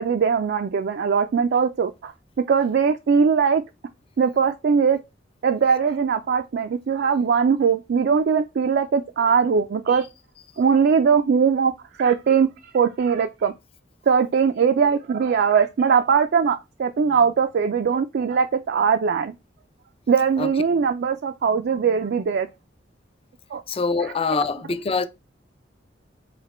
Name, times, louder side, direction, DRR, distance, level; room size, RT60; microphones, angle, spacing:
voice 1, 0.0-2.1 2.5-3.6 4.2-5.0 5.4-10.1 10.6-11.7 12.0-13.5 14.1-19.3 20.1-22.5 23.5-23.6 24.0-24.1, right 6 dB, 60° right, 0.3 m, -20 dB
voice 2, 23.7-25.1, left 4 dB, 30° left, 0.4 m, -24 dB
5.0 x 2.2 x 4.1 m
head